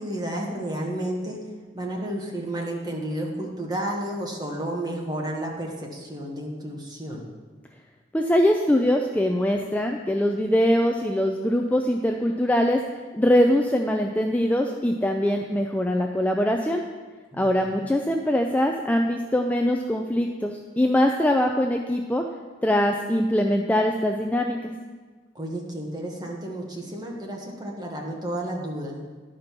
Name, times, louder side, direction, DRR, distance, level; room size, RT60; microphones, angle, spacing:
voice 1, 0.0-1.4 1.7-7.3 17.3-17.8 25.3-29.0, right 1 dB, 20° right, -2 dB, 1.3 m, -32 dB
voice 2, 8.1-12.8 13.1-16.8 17.4-22.2 22.6-24.7, left 1 dB, 10° left, 3 dB, 0.3 m, -22 dB
11.0 x 5.2 x 5.8 m, 1.4 s
head